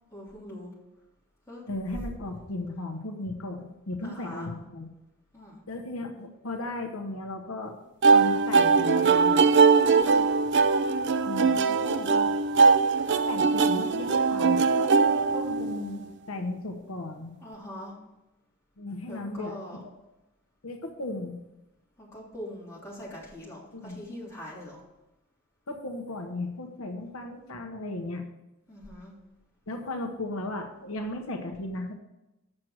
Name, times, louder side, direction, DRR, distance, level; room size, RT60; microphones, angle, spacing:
voice 1, 0.1-0.7 1.5-1.6 4.0-4.5 5.3-5.6 9.8-10.2 17.4-18.0 19.1-19.8 22.0-24.8 28.7-29.1, equal, 15° left, -6 dB, 3.1 m, -42 dB
voice 2, 1.7-4.9 5.7-7.8 8.1-9.4 11.2-12.3 13.0-17.3 18.8-19.6 20.6-21.4 23.7-24.0 25.7-28.2 29.7-31.9, left 2 dB, 80° left, 3 dB, 1.0 m, -36 dB
sound 1, 8.0-16.0, right 4 dB, 55° right, 0.5 m, -21 dB
7.5 x 6.1 x 6.4 m, 0.95 s
head